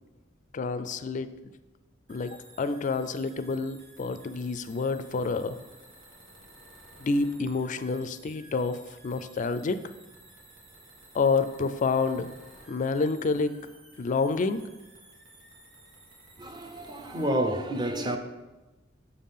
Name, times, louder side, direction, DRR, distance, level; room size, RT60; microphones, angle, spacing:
voice 1, 0.5-1.3 2.1-5.6 7.0-9.8 11.1-12.3 12.7-13.5 14.0-14.6, left 4 dB, 40° left, 0.4 m, -28 dB
sound 1, 2.1-17.3, right 2 dB, 90° right, 1.7 m, -54 dB
voice 2, 16.4-18.2, right 1 dB, 25° right, 0.6 m, -29 dB
6.8 x 3.6 x 5.7 m
head